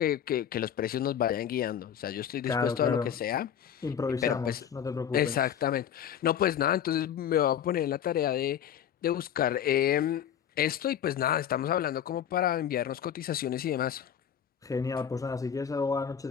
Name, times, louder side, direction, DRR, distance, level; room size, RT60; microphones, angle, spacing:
voice 1, 0.0-3.8 4.2-4.6 5.1-10.3 10.6-14.1, left 11 dB, 60° left, 5.0 m, -29 dB
voice 2, 2.5-3.1 3.8-5.4 14.6-16.3, left 3 dB, 20° left, 7.0 m, -31 dB
cardioid pair, 110°, 17 cm